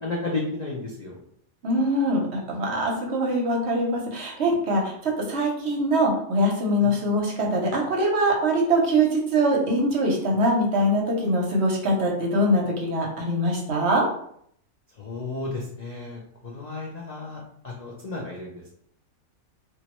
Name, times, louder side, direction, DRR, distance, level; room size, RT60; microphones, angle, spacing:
voice 1, 0.0-1.2 6.8-6.9 15.0-18.7, left 3 dB, 60° left, -3 dB, 0.4 m, -33 dB
voice 2, 1.6-14.0, right 1 dB, 60° right, -1 dB, 0.9 m, -23 dB
3.0 x 2.5 x 3.0 m, 0.67 s
omnidirectional pair, 1.4 m